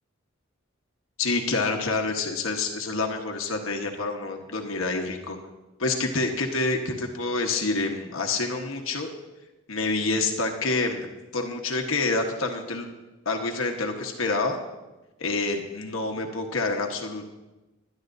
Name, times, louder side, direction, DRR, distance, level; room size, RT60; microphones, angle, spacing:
voice 1, 1.2-5.4 5.8-9.1 9.7-11.1 11.3-12.9 13.2-14.6 15.2-17.3, left 3 dB, 80° left, 3 dB, 1.3 m, -27 dB
21.0 x 11.5 x 2.7 m, 1.1 s
head